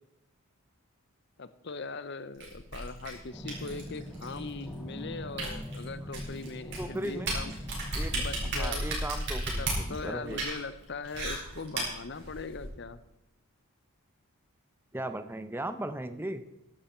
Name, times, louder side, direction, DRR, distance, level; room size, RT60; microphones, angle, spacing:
voice 1, 1.4-7.5 8.1-8.9 9.6-13.0, left 4 dB, 50° left, 13 dB, 0.7 m, -40 dB
sound 1, 2.4-12.7, right 2 dB, 50° right, 4.7 m, -35 dB
sound 2, 3.3-8.5, left 1 dB, 5° left, 1.9 m, -42 dB
voice 2, 6.8-7.3 7.9-8.1 8.6-10.4 14.9-16.4, right 1 dB, 10° right, 10 dB, 0.7 m, -37 dB
13.5 x 11.0 x 4.5 m, 0.89 s
head